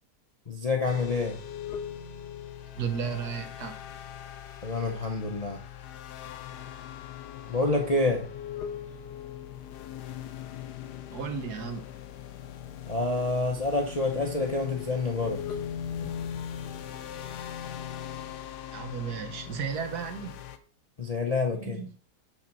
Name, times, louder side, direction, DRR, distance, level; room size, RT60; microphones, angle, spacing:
voice 1, 0.5-1.4 4.6-5.6 7.5-8.3 12.9-15.4 21.0-21.8, left 3 dB, 35° left, 0.6 m, -28 dB
sound 1, 0.9-20.6, left 9 dB, 80° left, 1.3 m, -40 dB
voice 2, 2.7-3.7 11.1-11.9 18.7-20.4 21.5-21.9, right 7 dB, 70° right, 1.5 m, -34 dB
6.4 x 4.4 x 6.0 m
omnidirectional pair, 1.8 m